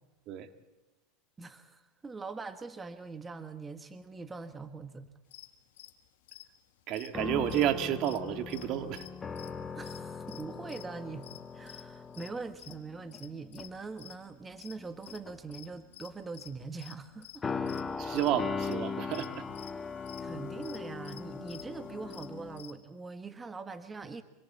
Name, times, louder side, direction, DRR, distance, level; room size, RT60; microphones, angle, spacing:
voice 1, 1.4-5.1 9.7-11.3 11.5-17.5 20.2-24.2, right 4 dB, 20° right, 9 dB, 1.5 m, -42 dB
sound 1, 5.3-8.7 8.9-14.2 14.6-17.0 17.2-17.4 17.7-17.8 18.1-22.7, left 14 dB, 75° left, 1.7 m, -52 dB
voice 2, 6.9-9.1 18.0-19.5, right 11 dB, 50° right, 8 dB, 2.0 m, -31 dB
sound 2, 7.1-13.2 13.6-13.9 14.8-15.6 17.4-22.6, left 5 dB, 20° left, 1.2 m, -39 dB
26.0 x 25.0 x 4.2 m, 1.1 s
hypercardioid pair, 95°, 0 cm